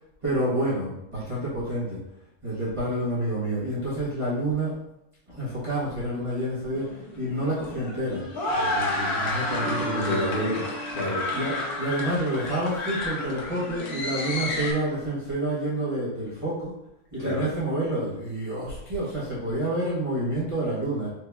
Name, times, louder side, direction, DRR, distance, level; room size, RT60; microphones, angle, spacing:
voice 1, 0.2-2.0 2.4-4.7 5.3-10.2 11.3-16.7 17.1-21.1, right 1 dB, 20° right, -9 dB, 1.3 m, -29 dB
sound 1, 6.7-14.7, left 2 dB, 85° left, 1.5 m, -31 dB
Bass guitar, 9.5-13.0, right 2 dB, 65° right, 0.5 m, -40 dB
voice 2, 9.6-11.3 17.2-17.5, equal, 40° left, -7 dB, 1.3 m, -29 dB
4.6 x 2.9 x 3.4 m, 0.86 s
omnidirectional pair, 1.5 m